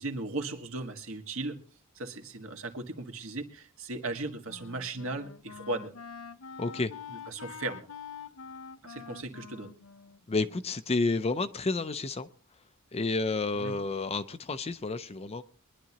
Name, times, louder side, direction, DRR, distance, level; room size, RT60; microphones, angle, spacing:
voice 1, 0.0-1.6 2.0-5.9 7.3-7.9 8.8-9.7 13.6-13.8, right 2 dB, 70° right, 4 dB, 1.7 m, -37 dB
Wind instrument woodwind instrument, 4.0-11.2, left 6 dB, 75° left, 0.7 m, -46 dB
voice 2, 6.6-6.9 10.3-12.3 12.9-15.4, left 3 dB, 30° left, 10 dB, 0.5 m, -30 dB
23.0 x 11.0 x 2.9 m, 0.41 s
head